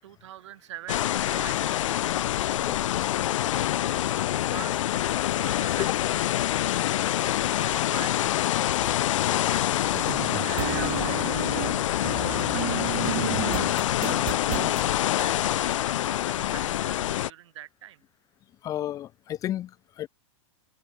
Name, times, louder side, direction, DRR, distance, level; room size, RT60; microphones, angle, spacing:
voice 1, 0.0-2.8 3.5-4.8 5.1-5.9 7.5-8.3 8.5-11.2 11.8-12.8 13.4-14.0 14.7-18.0, right 13 dB, 60° right, 6.5 m, -45 dB
sound 1, 0.9-17.3, left 13 dB, 70° left, 0.6 m, -26 dB
sound 2, 10.0-14.8, right 20 dB, 45° right, 3.3 m, -32 dB
voice 2, 18.6-20.1, left 12 dB, 20° left, 3.2 m, -33 dB
supercardioid pair, 165°, 17 cm